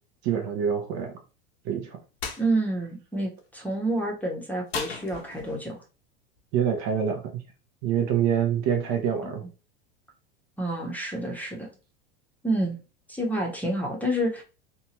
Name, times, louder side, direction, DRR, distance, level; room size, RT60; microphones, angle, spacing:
voice 1, 0.2-1.2 1.6-2.0 6.5-7.4 7.8-9.4, right 8 dB, 50° right, 0.7 m, -26 dB
sound 1, 2.2-2.4 4.7-5.7, left 5 dB, 80° left, 0.8 m, -35 dB
voice 2, 2.4-5.8 9.2-9.3 10.6-11.7 12.4-12.8 13.1-14.4, right 1 dB, 5° left, 0.8 m, -28 dB
2.7 x 2.3 x 2.8 m
hypercardioid pair, 95°, 31 cm